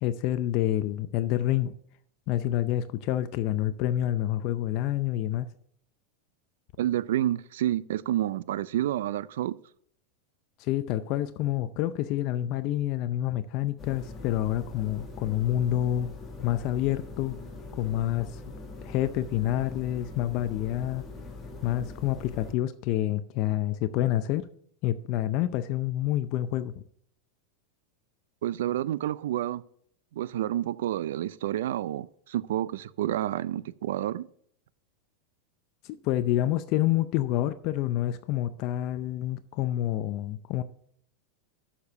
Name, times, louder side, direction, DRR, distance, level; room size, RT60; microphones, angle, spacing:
voice 1, 0.0-1.7 2.3-5.5 10.6-16.1 16.4-17.3 17.7-18.4 18.8-21.0 21.6-24.5 24.8-26.8 35.8-40.6, left 13 dB, 50° left, 0.5 m, -28 dB
voice 2, 6.8-9.6 28.4-29.6 30.1-34.3, right 12 dB, 80° right, 0.4 m, -29 dB
sound 1, 13.8-22.5, left 3 dB, 15° left, 1.7 m, -42 dB
7.2 x 6.8 x 6.5 m
supercardioid pair, 140°, 0 cm